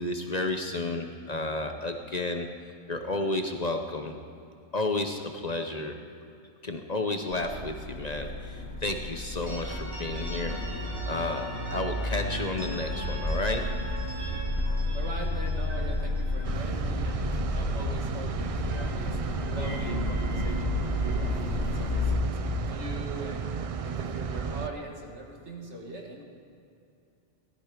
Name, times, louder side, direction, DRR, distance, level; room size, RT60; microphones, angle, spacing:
voice 1, 0.0-2.5 2.9-4.2 4.7-6.0 6.6-13.7, left 2 dB, 40° left, 5 dB, 0.9 m, -32 dB
sound 1, 7.3-22.2, left 2 dB, 65° left, 1.8 m, -32 dB
sound 2, 9.5-18.2 18.5-22.6, right 1 dB, 25° right, 4.0 m, -41 dB
voice 2, 14.9-23.6 23.8-26.2, right 2 dB, 80° right, 0 dB, 2.3 m, -41 dB
sound 3, 16.4-24.7, right 6 dB, 55° right, 0.3 m, -34 dB
16.5 x 14.0 x 5.0 m, 2.6 s
omnidirectional pair, 1.2 m